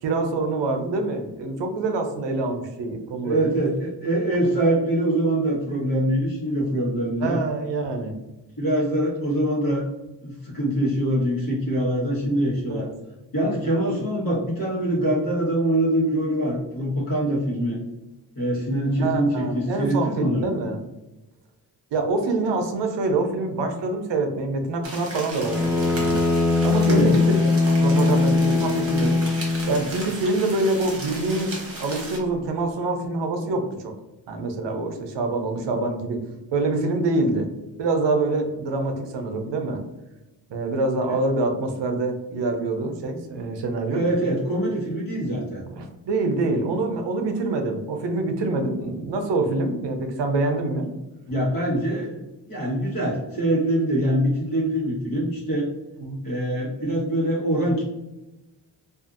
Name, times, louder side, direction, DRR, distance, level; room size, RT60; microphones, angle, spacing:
voice 1, 0.0-3.4 7.2-8.1 12.7-12.9 19.0-20.8 21.9-26.2 26.6-27.4 27.8-29.2 29.7-31.5 31.8-33.9 34.3-36.2 36.5-37.5 37.8-39.8 40.5-44.0 45.7-50.8 56.0-56.2, right 2 dB, 75° right, 4 dB, 0.6 m, -25 dB
voice 2, 3.2-7.4 8.6-9.8 10.2-12.9 13.3-17.8 18.3-20.4 26.9-27.1 43.9-45.6 51.3-55.7 56.2-57.8, right 1 dB, 50° left, -5 dB, 1.2 m, -24 dB
sound 1, 24.8-32.2, right 2 dB, 35° right, 0.9 m, -36 dB
Bowed string instrument, 25.4-29.9, left 3 dB, 5° right, 0.5 m, -21 dB
2.5 x 2.5 x 2.4 m, 1.0 s
wide cardioid pair, 100°, 43 cm